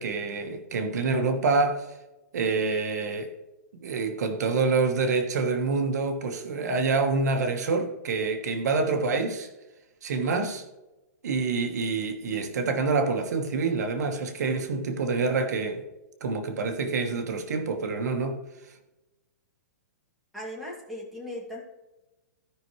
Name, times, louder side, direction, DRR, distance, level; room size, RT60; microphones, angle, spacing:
voice 1, 0.0-1.9 2.3-3.3 3.8-9.5 10.0-10.6 11.2-15.8 16.2-18.4, right 4 dB, 70° right, 1.3 m, -27 dB
voice 2, 20.3-21.6, left 1 dB, ahead, 2.4 m, -37 dB
16.5 x 5.7 x 3.1 m
hypercardioid pair, 160°, 9 cm